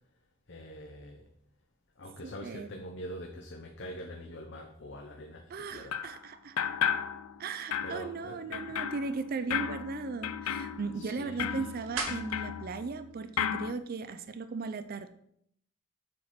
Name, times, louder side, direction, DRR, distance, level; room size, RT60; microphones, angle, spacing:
voice 1, 0.5-1.3 2.0-6.0 7.8-8.6 10.9-11.7, equal, 50° left, 1 dB, 0.8 m, -44 dB
voice 2, 2.2-2.7 5.5-6.6 7.4-15.1, right 4 dB, 40° right, 11 dB, 0.4 m, -37 dB
sound 1, 5.9-6.2 6.6-7.4 7.7-13.0 13.4-13.7, left 8 dB, 80° left, 0.5 m, -34 dB
sound 2, 9.0-14.1, right 3 dB, 65° right, 1.5 m, -45 dB
7.5 x 4.3 x 5.7 m, 0.72 s
head